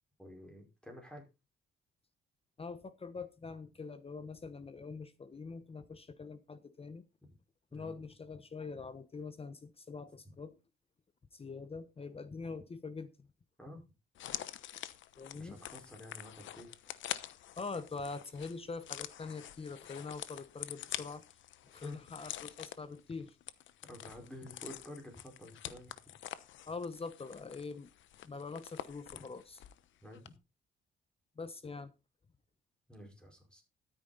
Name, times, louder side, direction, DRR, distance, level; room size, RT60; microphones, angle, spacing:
voice 1, 0.2-1.3 7.2-7.3 7.7-7.9 13.6-13.8 15.3-16.8 21.8-22.0 23.8-26.2 29.1-29.2 30.0-30.3 32.9-33.6, left 1 dB, 5° left, 5.0 m, -50 dB
voice 2, 2.6-7.0 7.7-10.6 11.3-13.1 15.2-15.6 17.6-21.2 21.7-23.4 26.7-27.9 28.2-29.6 31.4-31.9, left 4 dB, 30° left, 1.1 m, -44 dB
sound 1, 14.1-29.8 30.1-30.3, left 12 dB, 75° left, 1.0 m, -46 dB
13.0 x 9.3 x 4.1 m
cardioid pair, 90°, 20 cm